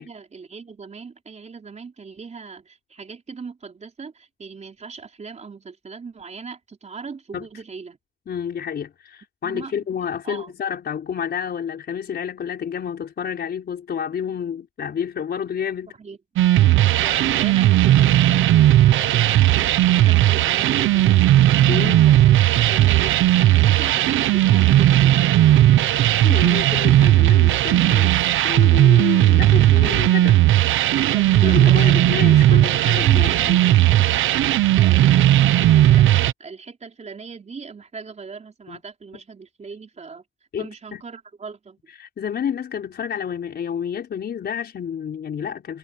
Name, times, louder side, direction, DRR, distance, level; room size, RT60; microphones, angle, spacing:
voice 1, 0.0-8.0 9.4-9.7 10.2-10.5 16.0-16.2 17.0-21.4 21.7-22.3 22.7-25.9 31.1-32.0 32.5-40.2 40.6-41.8, right 5 dB, 35° right, 4.2 m, -39 dB
voice 2, 8.3-16.0 21.7-22.1 26.2-28.2 28.4-30.4 31.4-33.6 38.7-38.8 40.5-41.0 42.0-45.8, left 8 dB, 55° left, 4.9 m, -29 dB
sound 1, 16.4-36.3, right 14 dB, 80° right, 1.0 m, -16 dB
cardioid pair, 90°, 20 cm